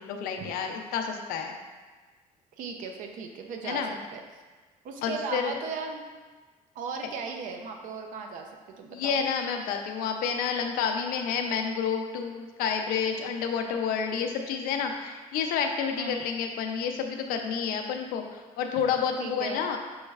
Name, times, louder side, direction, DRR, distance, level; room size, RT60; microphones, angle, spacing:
voice 1, 0.0-1.6 3.6-3.9 5.0-5.5 8.9-19.8, left 6 dB, 85° left, 4 dB, 0.5 m, -29 dB
voice 2, 2.6-4.2 4.8-6.0 6.8-9.1 16.0-16.2 18.8-18.9 19.2-19.6, right 5 dB, 65° right, 3 dB, 0.5 m, -37 dB
6.2 x 3.1 x 2.3 m, 1.3 s
cardioid pair, 145°, 15 cm